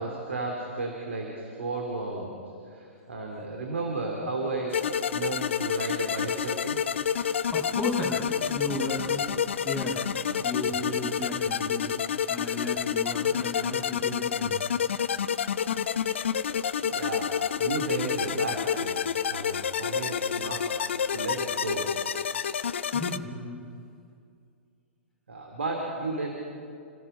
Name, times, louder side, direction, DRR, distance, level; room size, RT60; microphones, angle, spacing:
voice 1, 0.0-2.4 2.7-6.8 16.9-21.9 25.3-26.3, right 2 dB, 75° right, 1 dB, 3.3 m, -33 dB
sound 1, 4.7-23.2, left 8 dB, 65° left, 0.8 m, -29 dB
voice 2, 7.5-9.3 9.6-10.1 10.4-11.9 12.3-14.6 22.9-23.6, left 2 dB, 5° left, -4 dB, 6.2 m, -34 dB
28.0 x 17.5 x 5.6 m, 2.4 s
figure-of-eight pair, 115°, 7 cm